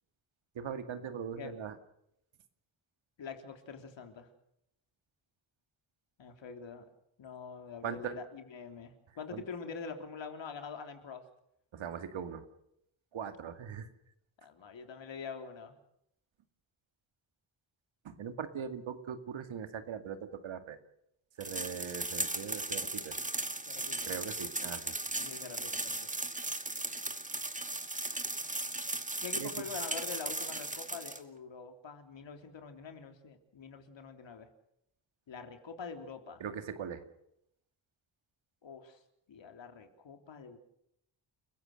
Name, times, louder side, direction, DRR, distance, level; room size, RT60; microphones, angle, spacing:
voice 1, 0.5-1.8 7.8-8.1 9.3-9.4 11.7-12.4 13.1-13.9 18.0-20.8 21.4-23.2 24.1-25.0 29.4-29.5 36.4-37.0, right 7 dB, 80° right, 8 dB, 2.3 m, -40 dB
voice 2, 3.2-4.3 6.2-6.9 7.2-11.2 14.4-15.7 23.7-24.1 25.2-26.0 29.2-34.5 35.3-36.4 38.6-39.0 39.3-40.6, left 5 dB, 70° left, 6 dB, 3.5 m, -45 dB
sound 1, 21.4-31.2, right 2 dB, 15° right, 2.2 m, -37 dB
30.0 x 15.5 x 6.6 m, 0.77 s
cardioid pair, 85°, 46 cm